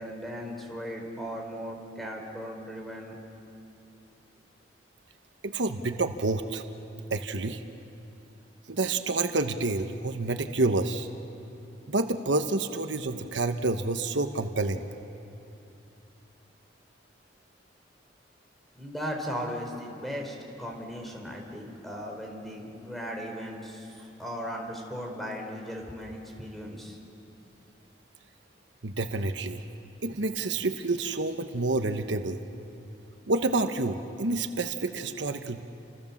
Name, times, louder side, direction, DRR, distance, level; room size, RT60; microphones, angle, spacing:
voice 1, 0.0-3.2 18.8-27.0, equal, ahead, 1 dB, 4.2 m, -37 dB
voice 2, 5.4-6.6 7.1-7.6 8.7-11.1 11.9-14.9 28.8-29.6 30.0-32.4 33.3-35.6, right 2 dB, 85° right, 7 dB, 1.2 m, -28 dB
30.0 x 26.0 x 7.3 m, 2.8 s
head